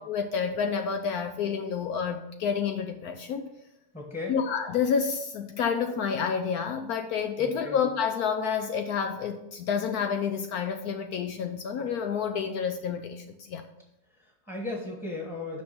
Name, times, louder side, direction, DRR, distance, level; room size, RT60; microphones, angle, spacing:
voice 1, 0.0-3.5 4.3-13.6, left 6 dB, 70° left, 6 dB, 1.1 m, -29 dB
voice 2, 3.9-4.4 7.4-7.8 14.1-15.6, left 2 dB, 5° left, -1 dB, 1.1 m, -36 dB
6.3 x 5.8 x 6.0 m, 0.92 s
omnidirectional pair, 1.7 m